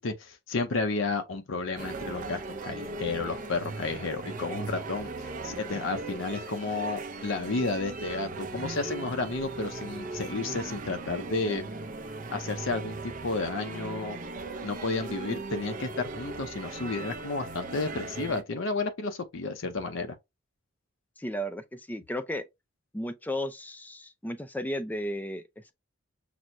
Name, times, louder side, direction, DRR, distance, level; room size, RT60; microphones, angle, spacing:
voice 1, 0.0-5.1 5.4-11.6 12.3-14.2 14.6-20.1, left 3 dB, 80° left, 0.6 m, -32 dB
sound 1, 1.8-18.4, right 3 dB, 40° right, 0.5 m, -38 dB
voice 2, 21.2-22.4 22.9-25.7, equal, 10° left, 0.4 m, -34 dB
6.0 x 2.1 x 2.5 m
head